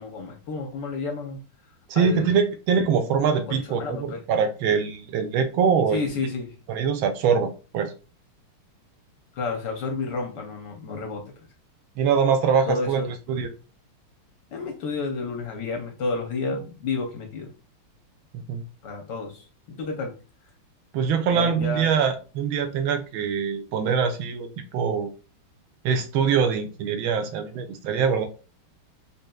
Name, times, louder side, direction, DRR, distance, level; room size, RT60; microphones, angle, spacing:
voice 1, 0.0-1.4 1.9-2.3 3.5-4.2 5.9-6.5 9.4-11.2 12.7-13.1 14.5-17.5 18.8-20.1 21.3-21.9, left 3 dB, 65° left, 3 dB, 1.1 m, -31 dB
voice 2, 1.9-6.0 6.7-7.9 12.0-13.0 13.3-13.5 18.3-18.6 20.9-25.1 25.8-28.3, right 6 dB, 75° right, 7 dB, 1.3 m, -23 dB
4.2 x 3.3 x 2.2 m, 0.34 s
omnidirectional pair, 2.4 m